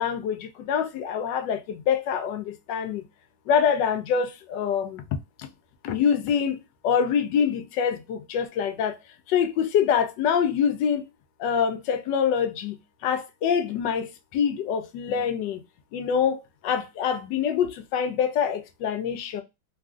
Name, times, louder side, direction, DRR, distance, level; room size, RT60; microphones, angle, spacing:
voice 1, 0.0-3.0 3.5-5.0 5.8-8.9 9.3-11.0 11.4-15.6 15.9-19.4, left 7 dB, 85° left, 1.3 m, -25 dB
3.3 x 2.4 x 2.3 m
omnidirectional pair, 1.9 m